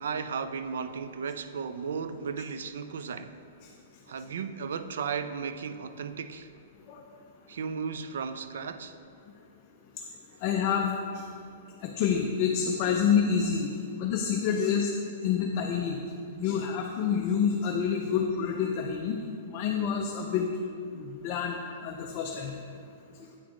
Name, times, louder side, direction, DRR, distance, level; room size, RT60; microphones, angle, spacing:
voice 1, 0.0-3.4 4.1-6.5 7.5-9.0, right 6 dB, 75° right, 11 dB, 0.3 m, -35 dB
voice 2, 10.4-10.9 11.8-13.7 14.0-14.9 15.2-16.0 16.3-19.2 19.5-20.5 20.9-21.6 21.8-22.5 23.2-23.3, left 7 dB, 30° left, 2 dB, 0.3 m, -27 dB
8.5 x 4.0 x 3.0 m, 2.4 s
hypercardioid pair, 165°, 0 cm